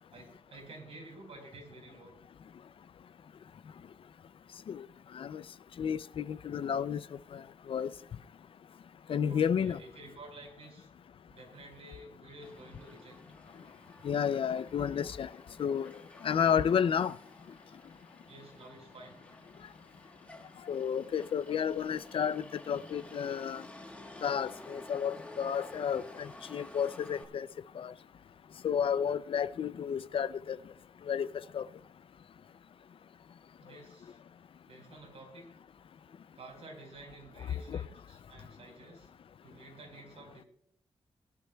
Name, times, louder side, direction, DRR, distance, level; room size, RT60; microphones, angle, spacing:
voice 1, 0.1-2.2 7.7-7.8 9.3-10.9 11.3-13.2 15.0-15.1 18.3-19.2 25.9-26.0 33.6-34.2 34.7-35.5 36.4-39.1 39.4-40.5, right 2 dB, 70° right, 4.4 m, -51 dB
voice 2, 5.8-7.0 7.3-7.4 7.7-7.9 9.1-9.8 14.0-15.3 15.6-15.9 16.2-17.1 20.7-23.6 24.2-27.5 27.8-27.9 28.6-30.6 31.1-31.3 31.5-31.6, left 8 dB, 60° left, 0.4 m, -31 dB
Motor vehicle (road), 12.4-27.2, left 1 dB, 10° left, 1.2 m, -52 dB
20.0 x 11.5 x 2.2 m
wide cardioid pair, 155°, 11 cm